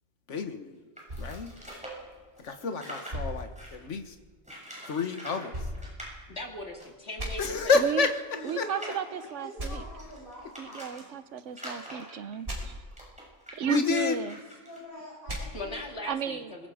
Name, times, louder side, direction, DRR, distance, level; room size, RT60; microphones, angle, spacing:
voice 1, 0.3-0.8 1.2-1.5 2.4-4.2 4.9-5.5 7.4-8.1 8.6-8.7 13.7-14.2, left 4 dB, 85° left, 6 dB, 1.6 m, -28 dB
sound 1, 1.0-3.9 4.4-5.5 5.7-6.1 6.8-6.9 7.1-7.2 7.7-11.0 11.5-14.8, equal, 5° right, 6.9 m, -45 dB
sound 2, 1.1-2.5 3.1-4.3 5.5-6.7 7.2-7.3 9.6-9.7 12.4-12.6 15.3-15.4, right 1 dB, 50° right, 5.5 m, -38 dB
voice 2, 6.3-7.8 15.5-16.7, left 1 dB, 65° left, 1 dB, 2.9 m, -39 dB
voice 3, 7.7-8.1 8.4-9.8 10.6-12.8 13.5-14.4 16.0-16.7, right 8 dB, 90° right, 13 dB, 1.2 m, -34 dB
voice 4, 8.3-11.1 14.6-15.9, left 1 dB, 50° left, -6 dB, 7.3 m, -45 dB
25.5 x 21.5 x 5.0 m, 1.4 s
omnidirectional pair, 1.2 m